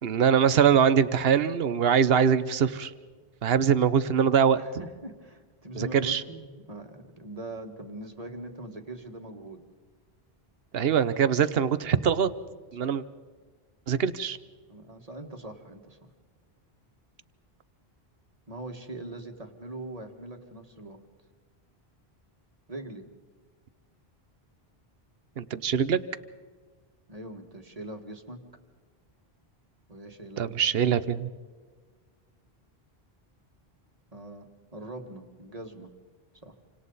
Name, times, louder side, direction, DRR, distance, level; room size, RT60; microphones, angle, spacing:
voice 1, 0.0-2.9 3.4-4.6 5.8-6.2 10.7-12.3 12.7-13.0 13.9-14.4 25.4-26.0 30.4-31.3, right 7 dB, 70° right, 14 dB, 1.1 m, -23 dB
voice 2, 4.5-9.6 12.8-12.9 14.7-16.1 18.5-21.0 22.7-23.0 27.1-28.4 29.9-30.5 34.1-35.9 36.4-36.6, right 1 dB, 35° right, 4 dB, 2.0 m, -42 dB
28.5 x 25.5 x 4.1 m, 1.5 s
omnidirectional pair, 1.1 m